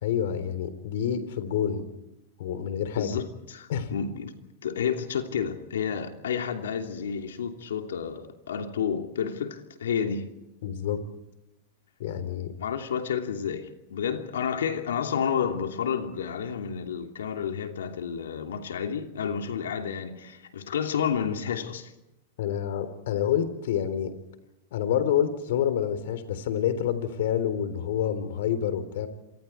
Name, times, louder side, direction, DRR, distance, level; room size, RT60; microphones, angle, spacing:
voice 1, 0.0-1.8 2.4-3.2 3.7-3.9 10.6-11.0 12.0-12.5 22.4-24.1 24.7-29.1, left 9 dB, 70° left, 3.7 m, -28 dB
voice 2, 3.0-4.3 4.6-10.3 12.6-21.9, left 7 dB, 90° left, 2.9 m, -30 dB
27.5 x 23.5 x 4.6 m
hypercardioid pair, 125°, 0 cm